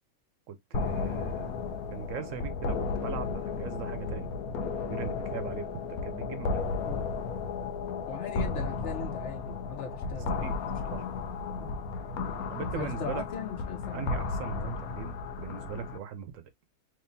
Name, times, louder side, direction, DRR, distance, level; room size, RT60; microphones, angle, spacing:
voice 1, 0.5-1.5 1.9-4.3 4.9-6.7 10.2-10.6 10.9-11.0 12.5-13.2 13.9-16.5, right 8 dB, 70° right, 0.9 m, -39 dB
sound 1, 0.7-16.0, left 4 dB, 85° left, 1.2 m, -34 dB
voice 2, 8.1-10.7 11.6-11.7 12.7-14.2, left 5 dB, 55° left, 1.1 m, -39 dB
3.6 x 3.1 x 2.6 m
omnidirectional pair, 1.5 m